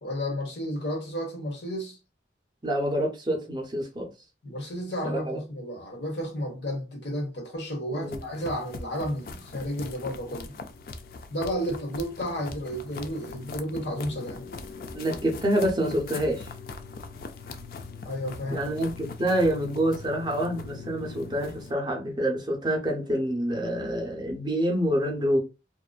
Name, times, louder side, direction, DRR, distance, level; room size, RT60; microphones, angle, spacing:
voice 1, 0.0-2.0 4.4-10.5 11.3-14.4 18.0-18.7, equal, 75° left, 1.1 m, -32 dB
voice 2, 2.6-4.1 5.0-5.4 7.9-8.2 14.9-16.5 18.5-25.4, right 1 dB, 25° right, 0.5 m, -27 dB
sound 1, 8.0-21.7, left 4 dB, 50° left, 0.3 m, -41 dB
2.5 x 2.3 x 2.2 m
head